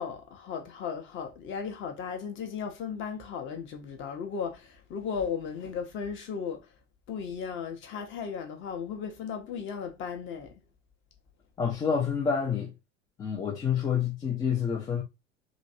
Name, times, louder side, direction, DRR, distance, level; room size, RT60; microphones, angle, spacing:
voice 1, 0.0-6.7 7.1-10.5, left 6 dB, 30° left, 0.8 m, -36 dB
voice 2, 11.6-12.7 13.2-15.0, left 7 dB, 10° left, 0.3 m, -28 dB
3.1 x 2.6 x 2.6 m
figure-of-eight pair, 85°, 38 cm